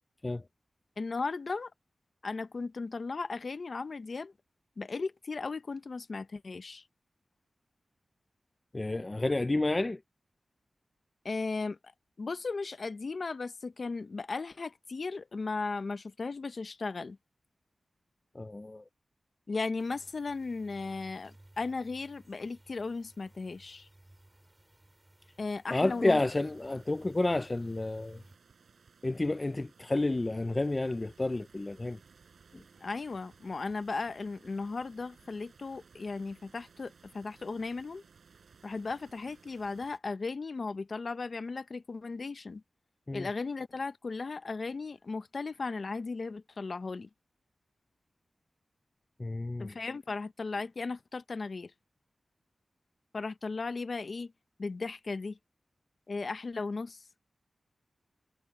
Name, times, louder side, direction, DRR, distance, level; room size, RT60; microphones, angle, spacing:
voice 1, 1.0-1.7 2.2-4.3 4.8-6.8 11.2-11.8 12.2-17.2 19.5-23.9 25.4-26.2 32.8-38.0 38.6-42.6 43.1-47.1 49.6-51.7 53.1-54.3 54.6-55.4 56.1-57.0, left 4 dB, 55° left, 0.8 m, -36 dB
voice 2, 8.7-10.0 18.3-18.8 25.7-28.2 29.0-32.0 32.5-32.6 43.1-43.3 49.2-49.7, left 2 dB, 25° left, 0.4 m, -30 dB
sound 1, 19.8-28.4, right 1 dB, 20° right, 4.8 m, -59 dB
sound 2, 25.8-40.0, right 5 dB, 80° right, 4.7 m, -60 dB
wide cardioid pair, 85°, 0 cm